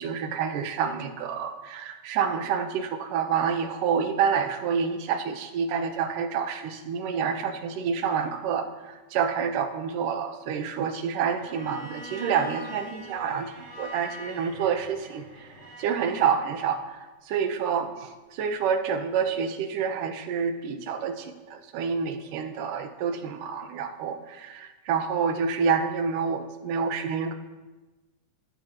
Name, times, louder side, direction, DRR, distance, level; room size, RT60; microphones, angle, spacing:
voice 1, 0.0-15.5 15.8-17.0 17.3-27.3, right 6 dB, 85° right, 7 dB, 2.7 m, -28 dB
Bowed string instrument, 11.4-16.3, equal, 60° right, 5.2 m, -43 dB
19.0 x 14.5 x 3.1 m, 1.2 s
omnidirectional pair, 3.6 m